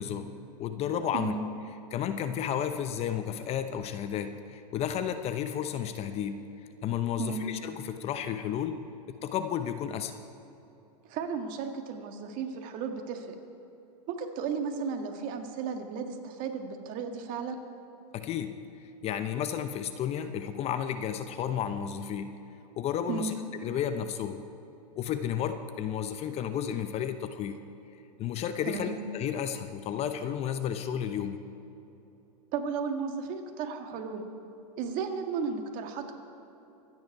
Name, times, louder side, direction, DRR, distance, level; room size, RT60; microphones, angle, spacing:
voice 1, 0.0-1.3 1.9-6.5 6.8-8.8 9.2-10.2 18.1-18.6 19.0-22.4 22.8-24.4 25.0-27.6 28.2-31.4, left 9 dB, 30° left, 9 dB, 0.7 m, -32 dB
voice 2, 11.0-13.4 14.1-17.6 23.1-23.3 28.7-29.0 32.5-34.2 34.8-36.1, right 6 dB, 40° right, 5 dB, 1.7 m, -34 dB
25.0 x 9.6 x 4.7 m, 3.0 s
hypercardioid pair, 120°, 21 cm